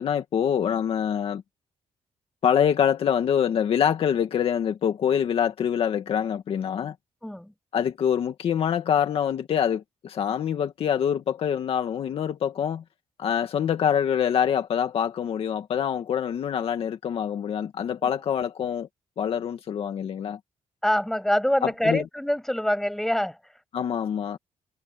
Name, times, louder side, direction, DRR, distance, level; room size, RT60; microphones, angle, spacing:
voice 1, 0.0-1.4 2.4-6.9 7.7-12.8 13.2-18.9 19.2-20.4 21.6-22.0 23.7-24.4, left 8 dB, 60° left, 2.0 m, -25 dB
voice 2, 7.2-7.5 20.8-23.4, left 1 dB, 5° left, 7.0 m, -25 dB
wide cardioid pair, 170°, 11 cm